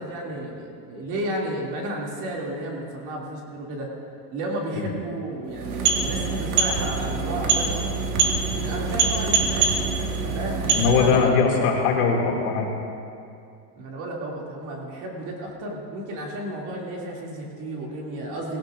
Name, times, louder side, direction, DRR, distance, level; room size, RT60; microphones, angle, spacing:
voice 1, 0.0-3.9 4.3-8.0 8.5-9.7 10.0-11.3 13.8-18.6, right 1 dB, 40° right, -2 dB, 2.6 m, -32 dB
sound 1, 5.5-11.3, right 5 dB, 55° right, 1.7 m, -24 dB
voice 2, 10.8-12.7, left 5 dB, 60° left, -1 dB, 2.6 m, -21 dB
18.0 x 17.0 x 2.6 m, 2.5 s
supercardioid pair, 165°, 50 cm